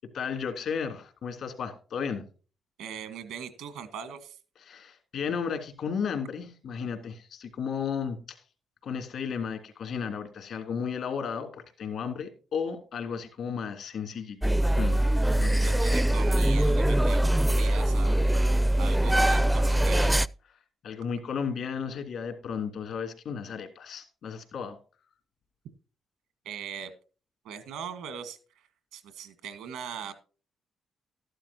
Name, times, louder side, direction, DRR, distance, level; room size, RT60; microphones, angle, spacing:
voice 1, 0.1-2.2 4.6-8.4 8.8-15.0 15.4-15.8 20.8-24.8, left 6 dB, 75° left, 5 dB, 3.0 m, -34 dB
voice 2, 2.8-4.4 15.6-17.2 17.6-20.2 26.4-26.9 27.4-30.1, right 7 dB, 90° right, 11 dB, 1.6 m, -40 dB
sound 1, 14.4-20.3, right 1 dB, 5° right, 0.4 m, -23 dB
13.0 x 11.5 x 2.9 m, 0.37 s
supercardioid pair, 60°, 0 cm